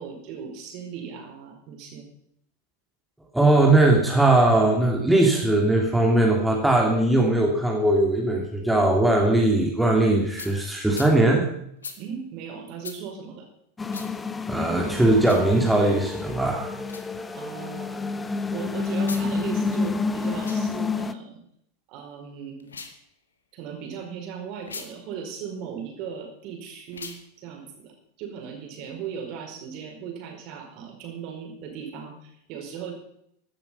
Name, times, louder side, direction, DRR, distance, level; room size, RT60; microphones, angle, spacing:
voice 1, 0.0-2.1 12.0-13.5 17.3-18.1 18.5-21.4 21.9-22.7 23.5-27.1 27.4-32.9, right 7 dB, 40° right, 3 dB, 5.0 m, -37 dB
voice 2, 3.3-11.5 14.5-16.7, right 2 dB, 5° right, -1 dB, 2.9 m, -20 dB
sound 1, 10.4-10.5 10.9-11.1 11.8-12.0 12.8-13.0 13.9-14.1 15.2-15.5 16.8-17.1 19.0-19.3 20.3-20.6 22.6-23.0 24.6-24.9 26.9-27.2, left 5 dB, 70° left, 1.9 m, -39 dB
sound 2, 13.8-21.1, left 4 dB, 10° left, 0.9 m, -29 dB
15.0 x 12.0 x 5.7 m, 0.72 s
figure-of-eight pair, 90°, 0 cm